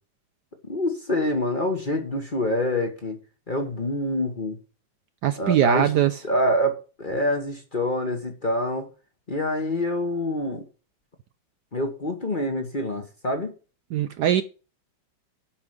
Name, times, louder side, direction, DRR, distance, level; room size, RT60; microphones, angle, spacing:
voice 1, 0.7-3.2 3.5-4.6 5.4-5.9 6.2-8.9 9.3-10.6 11.7-13.5, left 1 dB, 30° left, 1.2 m, -26 dB
voice 2, 5.2-6.2 13.9-14.4, right 11 dB, 70° right, 1.0 m, -21 dB
8.6 x 5.3 x 7.8 m
omnidirectional pair, 2.2 m